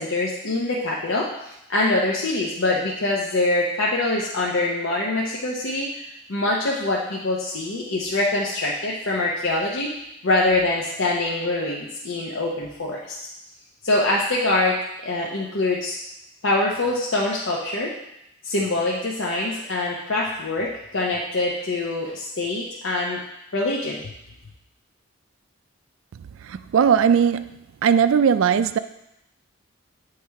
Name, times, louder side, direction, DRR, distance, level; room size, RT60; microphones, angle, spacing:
voice 1, 0.0-6.0 6.3-9.9 10.2-13.2 13.8-16.0 16.4-17.9 18.4-23.2 23.5-24.0, left 2 dB, 75° left, -4 dB, 0.8 m, -24 dB
voice 2, 26.4-27.5 27.8-28.8, right 7 dB, 80° right, 13 dB, 0.3 m, -18 dB
8.5 x 3.2 x 4.6 m, 0.84 s
head